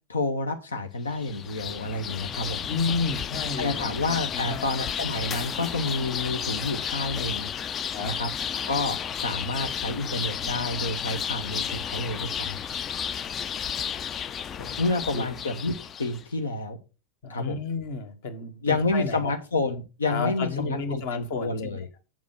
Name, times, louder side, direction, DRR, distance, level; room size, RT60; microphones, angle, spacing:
voice 1, 0.1-2.7 3.6-7.5 8.0-8.3 8.7-12.6 14.8-16.8 17.3-17.6 18.6-21.9, left 2 dB, 70° left, 7 dB, 0.9 m, -29 dB
sound 1, 1.1-16.2, left 8 dB, 25° left, 0.4 m, -32 dB
voice 2, 2.7-3.8 4.3-4.7 7.9-8.1 14.6-14.8 15.1-15.3 17.2-19.3 20.1-21.8, left 4 dB, 50° left, 8 dB, 1.7 m, -31 dB
7.4 x 7.2 x 5.8 m, 0.31 s
figure-of-eight pair, 90°, 0 cm